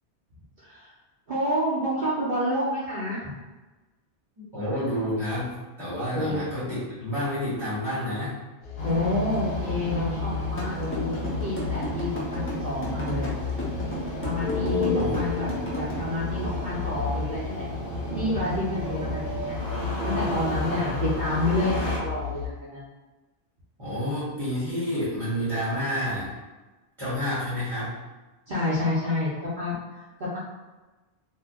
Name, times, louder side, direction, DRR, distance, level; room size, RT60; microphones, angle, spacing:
voice 1, 0.6-0.9 1.3-3.3 6.1-6.4 8.8-13.3 14.2-15.5 15.7-17.7 18.1-19.6 20.0-22.8 28.5-30.0 30.3-30.4, left 1 dB, 50° right, -10 dB, 0.8 m, -29 dB
voice 2, 4.4-8.3 14.5-15.2 20.7-20.8 23.8-26.3 27.0-28.0, equal, 25° right, -11 dB, 1.0 m, -29 dB
sound 1, 8.6-22.5, left 6 dB, 80° left, 1.2 m, -33 dB
Engine starting, 8.8-22.0, right 2 dB, 65° left, 1.0 m, -34 dB
sound 2, 10.6-15.9, equal, 20° left, 0.4 m, -34 dB
2.6 x 2.2 x 3.5 m, 1.2 s
omnidirectional pair, 1.2 m